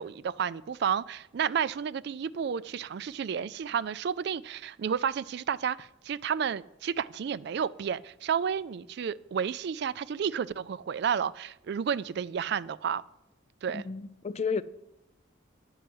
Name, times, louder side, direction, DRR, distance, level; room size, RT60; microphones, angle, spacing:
voice 1, 0.0-13.0 13.6-13.8, right 7 dB, 55° right, 0.3 m, -31 dB
voice 2, 13.7-14.6, left 5 dB, 35° left, 0.4 m, -32 dB
9.7 x 5.5 x 7.8 m
head